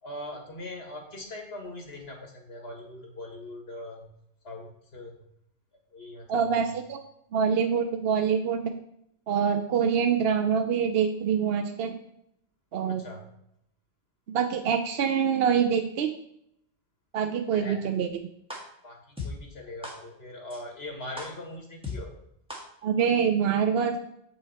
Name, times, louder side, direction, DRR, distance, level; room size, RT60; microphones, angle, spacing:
voice 1, 0.0-4.1 4.4-5.2 5.9-6.5 12.9-13.2 17.5-17.8 18.8-22.1, left 1 dB, 65° left, 1 dB, 2.0 m, -41 dB
voice 2, 6.3-7.0 7.3-8.7 9.3-11.9 12.7-13.0 14.3-16.1 17.1-18.1 22.8-24.0, right 7 dB, 70° right, 6 dB, 0.8 m, -25 dB
sound 1, 18.5-18.6 19.2-19.3 19.8-19.9 20.5-20.6 21.2-21.3 21.8-21.9 22.5-22.6, left 3 dB, 5° right, 1.5 m, -35 dB
7.8 x 5.7 x 4.2 m, 0.76 s
omnidirectional pair, 1.1 m